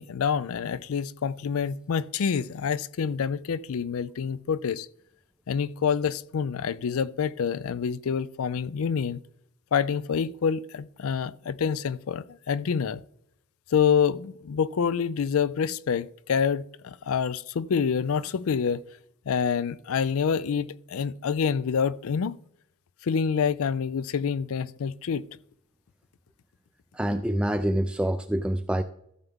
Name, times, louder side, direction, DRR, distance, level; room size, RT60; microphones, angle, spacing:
voice 1, 0.0-4.9 5.5-9.2 9.7-13.0 13.7-18.8 19.3-22.4 23.0-25.3, left 6 dB, 70° left, 0.4 m, -27 dB
voice 2, 26.9-28.8, right 1 dB, 5° right, 0.3 m, -26 dB
14.0 x 7.0 x 3.6 m
head